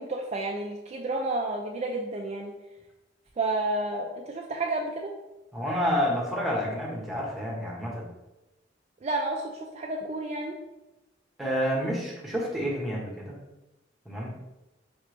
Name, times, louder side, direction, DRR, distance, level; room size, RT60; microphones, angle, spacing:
voice 1, 0.0-2.5 3.4-5.1 9.0-9.4 9.7-10.6, right 2 dB, 35° right, 1 dB, 0.4 m, -30 dB
voice 2, 5.5-8.1 11.4-13.4 14.0-14.3, equal, ahead, -4 dB, 1.1 m, -29 dB
4.9 x 3.3 x 3.1 m, 0.98 s
head